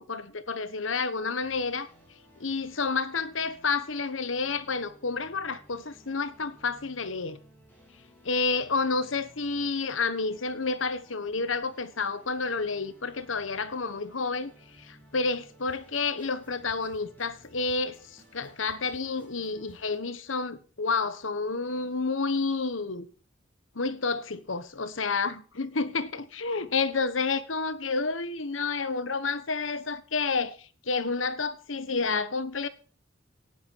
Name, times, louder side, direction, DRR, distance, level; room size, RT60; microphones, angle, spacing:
voice 1, 0.0-1.9 2.4-7.4 8.2-23.1 23.7-32.7, left 4 dB, 90° left, 1.3 m, -30 dB
sound 1, 1.4-20.0, equal, 10° left, 6.8 m, -57 dB
18.0 x 11.5 x 4.7 m
head